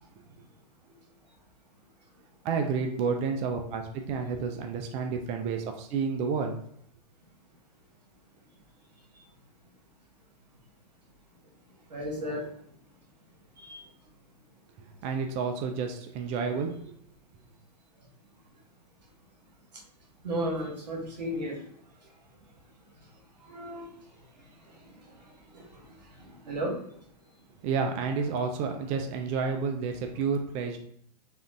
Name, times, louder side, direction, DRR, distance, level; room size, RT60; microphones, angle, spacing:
voice 1, 2.4-6.6 14.8-16.9 27.6-30.8, right 5 dB, 30° right, 4 dB, 0.4 m, -30 dB
voice 2, 11.9-12.4 13.6-13.8 20.2-21.5 23.4-23.9 25.5-25.6 26.4-26.7, equal, 85° right, -1 dB, 1.2 m, -33 dB
3.4 x 2.5 x 2.5 m, 0.67 s
hypercardioid pair, 115°, 21 cm